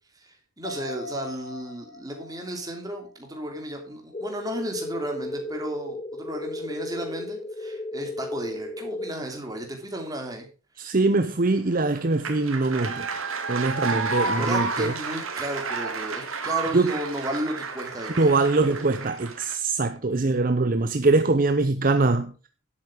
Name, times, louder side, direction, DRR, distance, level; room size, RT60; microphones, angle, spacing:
voice 1, 0.2-10.5 14.3-18.3, right 1 dB, 20° right, 2.9 m, -34 dB
sound 1, 0.6-4.3 4.7-4.8, left 3 dB, 65° left, 1.9 m, -42 dB
sound 2, 4.1-9.1, left 2 dB, 25° left, 0.8 m, -34 dB
voice 2, 10.8-13.1 13.5-14.9 16.7-16.9 18.2-22.3, right 3 dB, 40° right, 0.7 m, -23 dB
sound 3, 11.4-19.5, right 4 dB, 85° right, 2.1 m, -31 dB
11.0 x 8.6 x 5.0 m
head